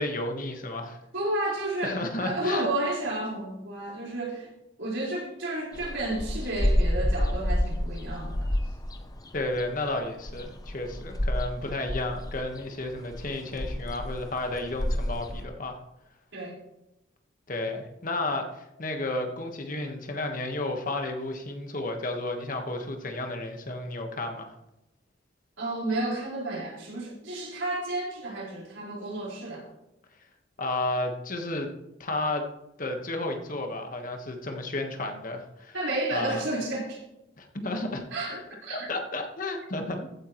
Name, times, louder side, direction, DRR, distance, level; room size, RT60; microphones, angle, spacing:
voice 1, 0.0-1.0 1.8-2.7 9.3-15.8 17.5-24.5 30.6-31.7 32.0-32.5 32.8-35.7 36.1-36.4 37.4-38.0 38.7-40.1, left 2 dB, 45° left, 4 dB, 1.5 m, -32 dB
voice 2, 1.1-4.5 4.8-8.5 16.3-16.6 25.6-29.7 35.7-37.0 38.1-38.9, right 2 dB, 75° right, -4 dB, 4.9 m, -31 dB
sound 1, 5.7-15.4, left 1 dB, 20° left, 0.7 m, -29 dB
15.0 x 9.3 x 3.2 m, 0.92 s
head